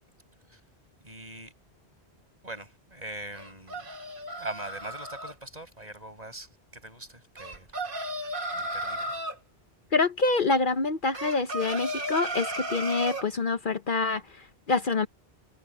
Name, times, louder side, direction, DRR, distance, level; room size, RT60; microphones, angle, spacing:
voice 1, 1.0-1.5 2.4-3.9 4.4-7.7 8.5-9.1, right 1 dB, 40° right, 7.0 m, -42 dB
sound 1, 3.3-5.3 7.4-9.4 11.1-13.3, right 1 dB, 55° right, 1.8 m, -34 dB
voice 2, 9.9-15.1, left 3 dB, 55° left, 1.1 m, -26 dB
omnidirectional pair, 1.1 m